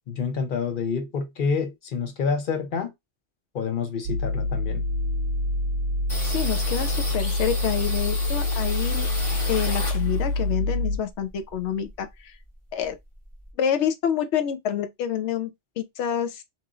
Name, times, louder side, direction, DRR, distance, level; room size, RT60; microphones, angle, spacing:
voice 1, 0.1-2.9 3.5-4.8, left 5 dB, 50° left, 0.9 m, -28 dB
sound 1, 4.0-11.0, left 2 dB, 65° right, 0.8 m, -26 dB
sound 2, 6.1-10.4 10.8-12.2 12.4-12.5 12.8-13.5, left 1 dB, 25° left, 1.2 m, -34 dB
voice 2, 6.2-9.1 9.5-12.4 12.7-13.0 13.6-16.4, left 9 dB, 75° left, 0.9 m, -28 dB
3.0 x 2.6 x 2.3 m
omnidirectional pair, 1.2 m